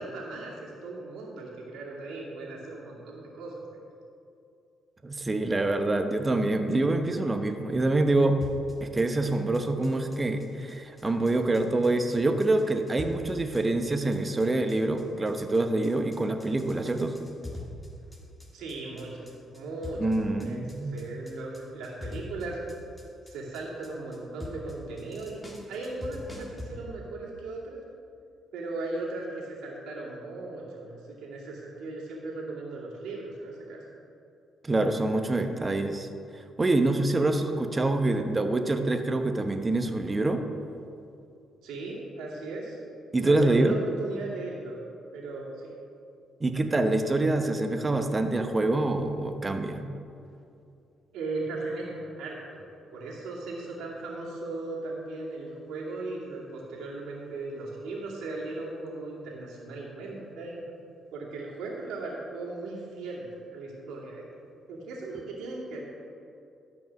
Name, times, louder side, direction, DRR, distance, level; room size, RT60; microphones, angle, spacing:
voice 1, 0.0-3.7 18.5-19.2 19.5-22.6 23.3-25.4 25.7-27.8 28.5-33.8 41.6-42.8 43.2-44.8 45.1-45.7 51.1-52.6 52.9-60.6 61.1-64.2 64.7-65.8, right 2 dB, 90° right, -4 dB, 2.5 m, -37 dB
voice 2, 5.0-8.4 8.8-17.1 20.0-20.9 34.6-36.1 36.3-40.4 43.1-43.8 46.4-49.9, right 2 dB, 20° right, 7 dB, 0.9 m, -26 dB
sound 1, 8.4-26.7, left 1 dB, 15° left, 1.8 m, -44 dB
12.5 x 5.4 x 6.0 m, 2.5 s
cardioid pair, 90°, 0 cm